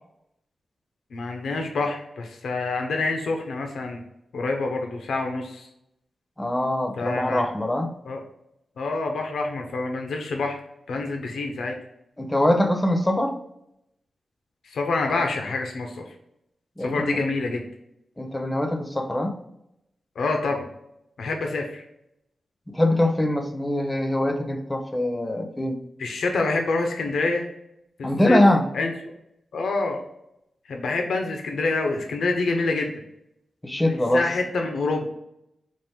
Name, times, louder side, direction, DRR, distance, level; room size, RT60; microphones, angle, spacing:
voice 1, 1.1-4.0 4.3-5.7 7.0-7.5 8.0-8.2 8.8-10.6 10.9-11.7 14.7-16.0 16.8-17.6 20.2-20.6 21.2-21.8 26.0-27.5 28.0-28.4 28.7-28.9 29.5-30.0 30.7-32.9 34.1-35.1, left 3 dB, 90° left, 3 dB, 0.6 m, -26 dB
voice 2, 6.4-7.9 12.2-13.4 16.8-17.2 18.2-19.4 22.7-25.8 28.0-28.7 33.6-34.3, left 1 dB, 15° left, 6 dB, 0.6 m, -23 dB
4.4 x 2.5 x 3.5 m, 0.81 s
wide cardioid pair, 95°, 0 cm